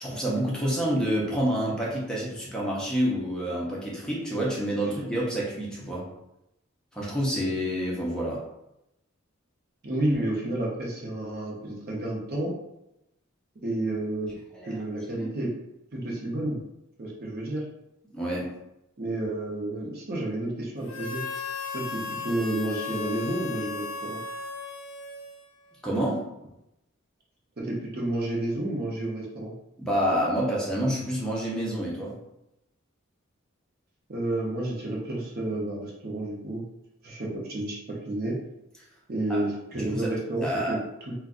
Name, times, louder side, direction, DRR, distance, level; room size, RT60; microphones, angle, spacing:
voice 1, 0.0-6.1 6.9-8.4 14.5-14.8 18.1-18.5 25.8-26.3 29.8-32.2 39.3-39.4 39.7-40.1 40.4-40.8, equal, 5° left, -5 dB, 0.6 m, -28 dB
voice 2, 9.8-12.5 13.6-14.4 14.6-15.5 15.9-16.6 17.0-17.6 19.0-21.2 21.7-24.2 27.6-29.5 34.1-36.6 37.0-38.4 39.1-40.8, right 1 dB, 50° right, -2 dB, 0.7 m, -30 dB
Harmonica, 20.9-25.7, left 5 dB, 85° left, 0.5 m, -36 dB
2.5 x 2.2 x 3.6 m, 0.86 s
head